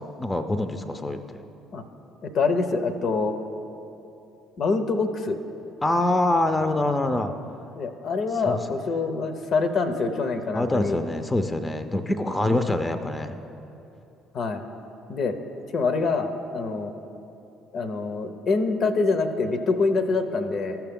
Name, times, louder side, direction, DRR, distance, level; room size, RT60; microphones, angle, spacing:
voice 1, 0.0-1.4 5.8-7.3 8.4-8.8 10.5-13.4, left 1 dB, 20° left, 8 dB, 0.5 m, -25 dB
voice 2, 2.2-3.3 4.6-5.4 7.8-11.0 14.3-14.6 15.1-15.3 15.7-16.9 17.7-20.8, left 4 dB, 55° left, 8 dB, 0.6 m, -25 dB
13.5 x 5.8 x 3.7 m, 2.8 s
hypercardioid pair, 55°, 0 cm